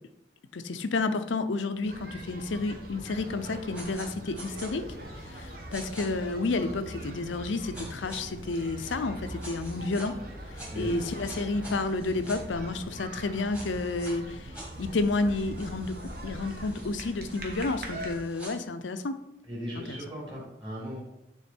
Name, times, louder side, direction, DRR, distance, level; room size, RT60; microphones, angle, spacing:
voice 1, 0.5-4.9 5.3-10.1 10.5-14.5 14.8-16.0 16.2-19.2 19.8-20.0, left 3 dB, 85° left, 11 dB, 0.5 m, -31 dB
sound 1, 1.8-18.1, right 1 dB, 50° right, 1.2 m, -42 dB
sound 2, 3.7-4.1 4.3-4.7 5.7-6.0 7.7-8.2 9.4-10.1 10.6-12.4 13.5-14.1 14.5-18.5, right 1 dB, 5° right, 1.5 m, -46 dB
voice 2, 10.7-11.0 19.5-21.0, equal, 25° right, -5 dB, 2.5 m, -37 dB
9.1 x 3.7 x 4.4 m, 0.87 s
head